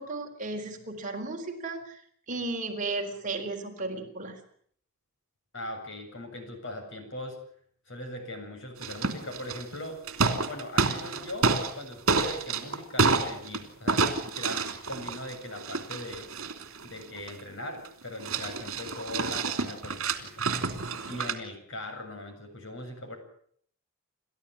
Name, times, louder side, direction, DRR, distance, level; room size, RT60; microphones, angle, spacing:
voice 1, 0.0-2.0 2.3-4.4, right 3 dB, 35° right, 3 dB, 4.1 m, -34 dB
voice 2, 5.5-7.4 7.9-10.0 10.5-16.3 16.8-20.4 21.1-23.2, left 1 dB, 60° left, 5 dB, 7.6 m, -40 dB
sound 1, 8.8-9.8 10.1-11.8 12.1-13.6 13.9-17.4 17.9-18.0 18.2-21.3, right 4 dB, 65° right, 3.1 m, -28 dB
29.5 x 14.0 x 9.8 m, 0.63 s
head